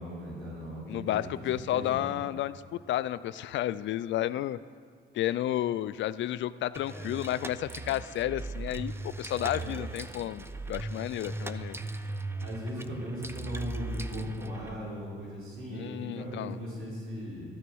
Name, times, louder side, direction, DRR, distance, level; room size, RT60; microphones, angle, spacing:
voice 1, 0.0-2.1 6.8-7.4 9.5-10.0 12.4-17.4, equal, 90° right, -7 dB, 4.3 m, -38 dB
voice 2, 0.9-4.6 5.1-8.9 9.2-11.8 15.7-16.6, left 13 dB, 70° left, 15 dB, 0.4 m, -32 dB
sound 1, 6.7-14.7, right 2 dB, 10° right, 0.6 m, -38 dB
14.0 x 9.8 x 6.2 m, 2.1 s
cardioid pair, 90°, 20 cm